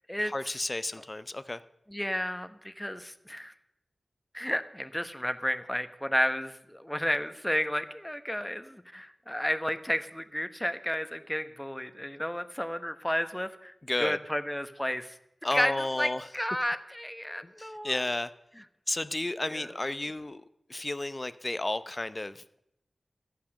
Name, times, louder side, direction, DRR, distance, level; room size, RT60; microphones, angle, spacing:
voice 1, 0.2-1.6 13.8-14.2 15.4-16.3 17.4-18.3 18.9-22.4, left 2 dB, 35° left, 14 dB, 0.6 m, -32 dB
voice 2, 1.9-3.5 4.3-15.2 15.5-18.1 19.5-19.7, equal, 10° left, 10 dB, 1.0 m, -32 dB
14.0 x 8.8 x 6.3 m, 0.80 s
wide cardioid pair, 55°, 0 cm